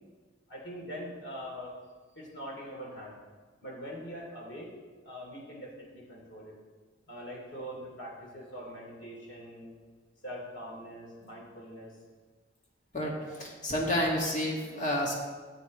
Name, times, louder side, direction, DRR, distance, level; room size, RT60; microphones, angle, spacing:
voice 1, 0.5-1.7 2.1-3.2 3.6-4.7 5.0-6.5 7.1-9.8 10.2-12.0 13.3-13.4, equal, 65° left, -3 dB, 3.0 m, -43 dB
voice 2, 12.9-15.1, left 1 dB, 40° left, -3 dB, 2.0 m, -30 dB
14.5 x 7.7 x 3.2 m, 1.5 s
head